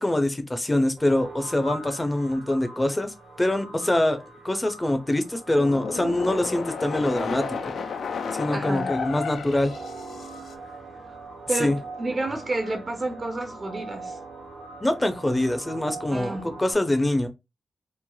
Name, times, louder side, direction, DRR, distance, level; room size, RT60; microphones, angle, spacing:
voice 1, 0.0-4.2 4.4-7.7 8.3-9.7 11.6-11.8 14.8-17.3, left 1 dB, 20° left, 0.5 m, -24 dB
sound 1, 1.0-16.7, right 3 dB, 80° right, 1.1 m, -42 dB
sound 2, 5.5-10.5, left 5 dB, 80° left, 0.3 m, -32 dB
voice 2, 8.5-8.9 11.5-14.2 16.1-16.5, right 2 dB, 40° right, 0.5 m, -30 dB
3.1 x 2.0 x 2.2 m
cardioid pair, 75°, 0 cm